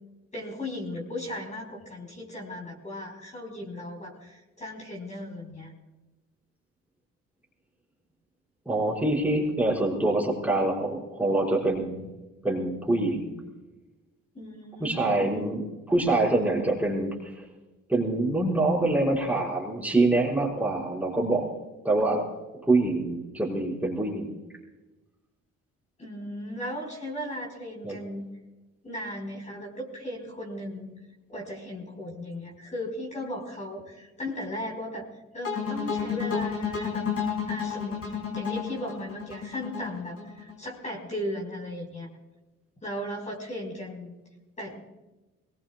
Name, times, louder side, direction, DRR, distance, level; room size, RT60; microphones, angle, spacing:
voice 1, 0.3-5.7 14.3-15.3 26.0-28.3 28.8-30.9 31.3-37.0 37.5-38.0 38.3-42.1 42.8-44.2 44.6-44.8, left 1 dB, 25° left, -2 dB, 4.8 m, -36 dB
voice 2, 8.7-12.1 12.4-13.4 14.8-17.4 17.9-21.5 21.8-22.2 22.7-24.4 27.8-28.0, right 2 dB, 5° right, -4 dB, 5.3 m, -25 dB
sound 1, 35.4-40.5, left 7 dB, 50° left, 5.7 m, -31 dB
22.5 x 20.5 x 2.4 m, 1.1 s
cardioid pair, 90°, 30 cm